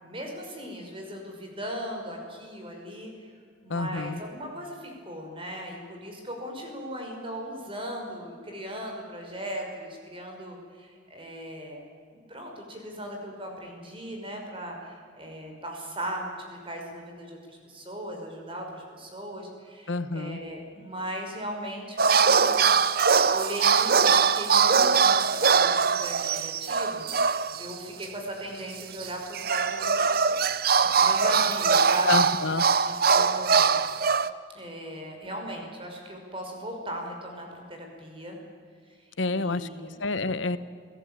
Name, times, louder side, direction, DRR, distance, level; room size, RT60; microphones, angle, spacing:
voice 1, 0.0-3.3 3.6-11.8 12.1-22.8 23.3-30.1 30.8-32.3 32.8-33.7 34.5-38.4 38.9-39.0 39.3-39.9, right 1 dB, 30° right, 2 dB, 5.6 m, -38 dB
voice 2, 3.7-4.2 19.9-20.4 32.1-32.7 39.2-40.6, left 3 dB, 80° left, 13 dB, 1.1 m, -28 dB
sound 1, 22.0-27.7 28.0-28.1 29.0-34.3, right 5 dB, 50° right, 0.8 m, -22 dB
29.5 x 17.5 x 9.1 m, 2.2 s
head